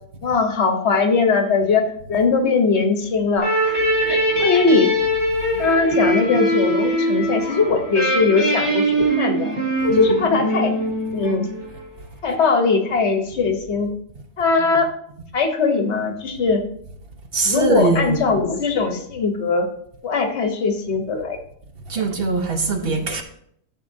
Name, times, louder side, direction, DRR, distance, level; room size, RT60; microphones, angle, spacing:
voice 1, 0.2-4.9 5.6-9.5 9.8-10.7 11.1-11.5 12.2-13.9 14.4-14.9 15.3-16.6 17.4-19.7 20.0-21.4 22.0-22.1 23.0-23.1, left 4 dB, 65° left, 1.2 m, -20 dB
sound 1, 3.4-11.9, right 1 dB, 20° right, 3.6 m, -22 dB
voice 2, 17.3-18.4 21.9-23.2, right 3 dB, 55° right, 1.1 m, -22 dB
11.5 x 7.0 x 2.7 m
omnidirectional pair, 1.2 m